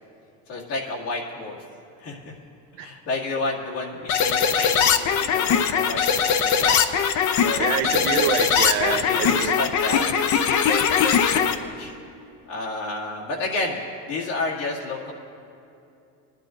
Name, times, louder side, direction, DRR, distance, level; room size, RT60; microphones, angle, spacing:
voice 1, 0.5-1.6 2.0-2.4 2.8-6.8 7.4-7.7 8.7-10.5 10.8-11.0 11.3-11.9 12.5-15.1, left 2 dB, 80° left, -3 dB, 2.2 m, -31 dB
sound 1, 4.1-11.6, left 7 dB, 50° left, 0.6 m, -21 dB
voice 2, 7.6-9.5, right 9 dB, 85° right, 7 dB, 0.8 m, -26 dB
20.5 x 10.5 x 2.5 m, 2.6 s
supercardioid pair, 115°, 38 cm